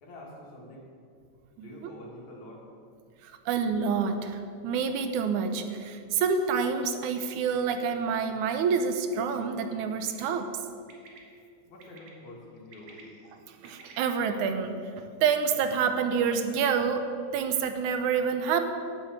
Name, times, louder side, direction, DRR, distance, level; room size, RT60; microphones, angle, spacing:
voice 1, 0.0-0.9 1.5-2.7 11.7-13.1, left 1 dB, 75° left, -2 dB, 3.4 m, -47 dB
voice 2, 3.2-10.5 13.6-18.6, right 6 dB, 85° right, 8 dB, 2.3 m, -28 dB
Bird, 9.9-10.2 10.9-11.2 11.8-12.1 12.6-13.9, right 5 dB, 60° right, 2.4 m, -52 dB
11.5 x 6.6 x 8.1 m, 2.4 s
omnidirectional pair, 3.4 m